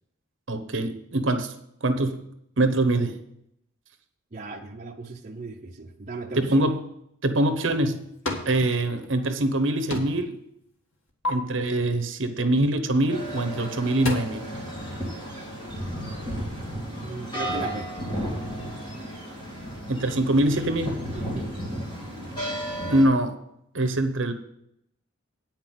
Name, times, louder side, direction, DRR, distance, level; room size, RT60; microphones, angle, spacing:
voice 1, 0.5-1.5 1.8-2.2 2.6-3.2 6.4-6.8 7.2-8.0 8.5-10.3 11.2-14.4 19.9-21.0 22.8-23.4 23.7-24.3, right 1 dB, 60° right, 8 dB, 1.0 m, -23 dB
voice 2, 4.3-6.7 8.3-8.5 17.0-17.9 21.1-21.5, right 3 dB, 35° right, 0 dB, 0.7 m, -36 dB
sound 1, 7.5-8.6 8.9-9.6 9.9-10.3 10.7-11.3 13.1-13.3 13.7-14.1, left 2 dB, 75° left, 1.7 m, -33 dB
sound 2, 13.1-23.0, equal, 20° left, 2.8 m, -34 dB
9.1 x 6.0 x 7.6 m, 0.77 s
head